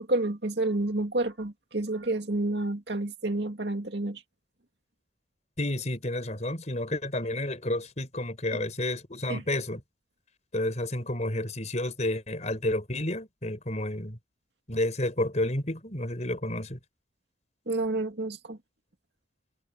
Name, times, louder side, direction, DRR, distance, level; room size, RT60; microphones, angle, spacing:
voice 1, 0.0-4.2 9.3-9.4 17.7-18.6, right 2 dB, 60° right, 2.4 m, -29 dB
voice 2, 5.6-9.8 10.5-14.2 14.7-16.8, left 1 dB, 35° left, 5.1 m, -30 dB
head